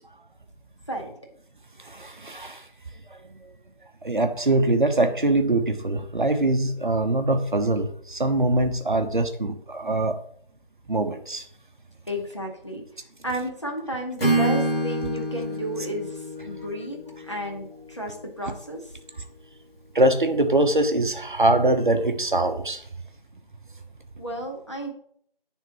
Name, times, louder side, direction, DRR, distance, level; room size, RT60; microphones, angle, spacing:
voice 1, 1.8-2.6 4.0-10.2 10.9-11.4 19.9-22.8, right 2 dB, 55° right, 6 dB, 0.8 m, -23 dB
voice 2, 12.1-12.8 13.2-17.0 17.3-18.9 24.2-24.9, right 1 dB, 30° left, 1 dB, 0.8 m, -32 dB
Acoustic guitar / Strum, 14.2-18.2, right 1 dB, 80° left, 1.8 m, -27 dB
9.8 x 3.6 x 2.9 m, 0.63 s
figure-of-eight pair, 170°, 29 cm